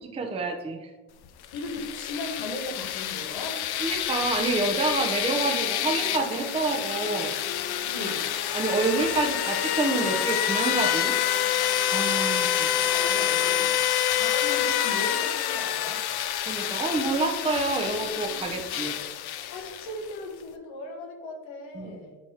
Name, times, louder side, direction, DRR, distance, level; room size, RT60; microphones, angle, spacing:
voice 1, 0.2-0.9 3.8-7.4 8.5-11.1 11.9-12.9 16.5-19.0 21.7-21.9, right 3 dB, 15° right, 1 dB, 0.6 m, -28 dB
sound 1, 1.4-20.1, left 11 dB, 55° left, 0.5 m, -27 dB
voice 2, 1.5-3.7 7.8-8.3 12.9-13.8 14.1-16.0 19.5-22.2, left 2 dB, 90° left, 2 dB, 1.5 m, -37 dB
sound 2, 5.7-14.0 15.0-15.1, right 1 dB, 45° right, 0.8 m, -43 dB
10.0 x 3.4 x 2.8 m, 1.3 s
cardioid pair, 130°, 45 cm